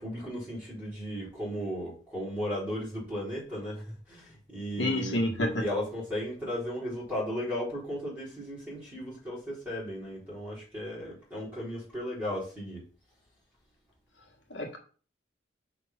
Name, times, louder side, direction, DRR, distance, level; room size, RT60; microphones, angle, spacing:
voice 1, 0.0-5.2 5.5-12.8, equal, 10° right, -7 dB, 3.9 m, -35 dB
voice 2, 4.8-5.6 14.5-14.8, left 1 dB, 75° left, 2 dB, 1.4 m, -28 dB
5.9 x 3.7 x 5.8 m, 0.39 s
head